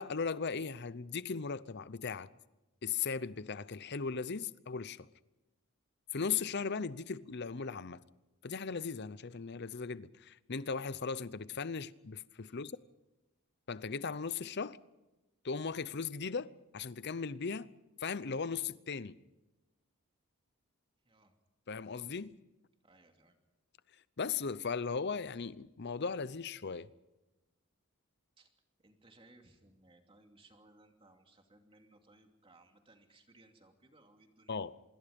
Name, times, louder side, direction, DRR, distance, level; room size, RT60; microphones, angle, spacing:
voice 1, 0.0-2.3 2.8-5.1 6.1-8.0 8.4-12.8 13.7-14.8 15.4-17.7 18.0-19.2 21.7-22.3 24.2-26.9 34.5-34.7, left 5 dB, 50° left, 0.7 m, -37 dB
voice 2, 22.8-23.4 28.4-28.5 28.8-34.6, right 2 dB, 25° right, 2.6 m, -63 dB
25.5 x 22.0 x 5.3 m
head